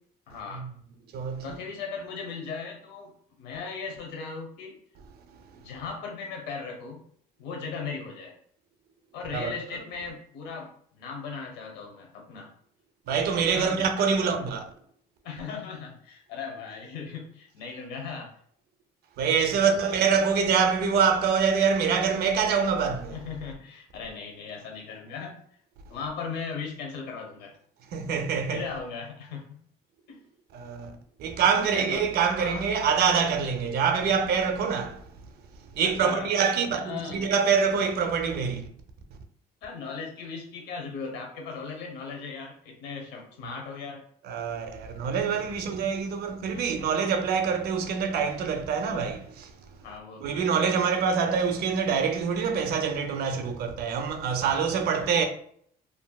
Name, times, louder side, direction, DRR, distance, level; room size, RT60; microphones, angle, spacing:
voice 1, 0.3-0.6 1.4-3.1 3.4-4.8 5.5-7.0 7.4-8.3 9.1-12.5 13.5-13.9 14.2-14.4 15.2-18.3 19.5-19.9 23.1-25.4 25.9-27.5 28.5-29.4 30.1-30.2 31.4-32.0 32.4-32.6 35.8-37.3 39.6-44.0 45.6-45.7 46.5-46.6 49.8-50.5, left 5 dB, 90° left, 0.8 m, -38 dB
voice 2, 1.1-1.5 9.3-9.5 13.1-14.6 19.2-23.2 27.9-28.6 30.5-35.0 35.7-38.7 44.2-49.5 50.2-55.2, right 6 dB, 70° right, 0.6 m, -25 dB
3.2 x 2.6 x 2.3 m
cardioid pair, 110°, 17 cm